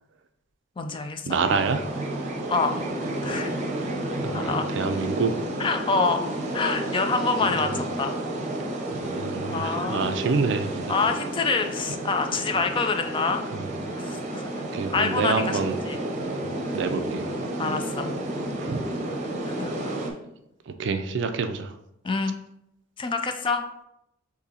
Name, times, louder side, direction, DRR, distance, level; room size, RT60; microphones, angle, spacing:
voice 1, 0.8-1.4 2.5-2.8 3.2-3.5 4.3-4.9 5.6-6.3 6.5-8.1 9.5-10.2 10.9-13.4 14.0-14.6 14.9-15.6 15.9-16.0 17.6-18.1 19.4-19.8 22.0-22.4 23.0-23.6, left 4 dB, 25° left, 6 dB, 0.3 m, -26 dB
voice 2, 1.3-1.8 4.1-5.3 7.5-7.6 9.0-10.9 13.5-13.6 14.7-15.8 16.4-17.3 18.6-18.8 20.7-21.7, right 4 dB, 65° right, 9 dB, 0.4 m, -27 dB
sound 1, 1.4-20.1, right 1 dB, 35° right, 0.7 m, -31 dB
6.5 x 2.7 x 2.8 m, 0.83 s
head